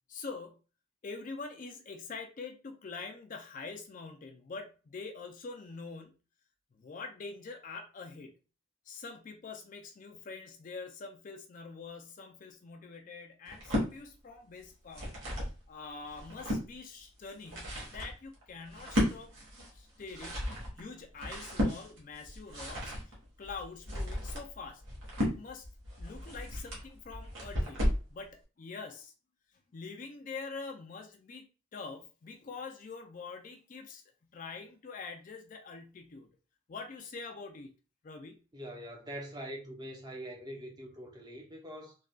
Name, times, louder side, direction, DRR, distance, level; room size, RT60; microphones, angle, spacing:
voice 1, 0.1-0.6 1.0-6.2 6.7-8.4 8.9-15.1 15.7-19.3 19.7-24.8 25.2-25.7 26.0-29.1 29.7-34.0 34.3-36.3 36.7-37.8 38.0-38.5, left 4 dB, 40° left, 0.4 m, -45 dB
sound 1, 13.4-13.9 14.7-15.6 16.0-16.7 17.2-28.1, equal, 70° right, 1.3 m, -34 dB
voice 2, 38.5-42.0, equal, 20° right, 0.7 m, -43 dB
3.6 x 2.3 x 2.3 m
head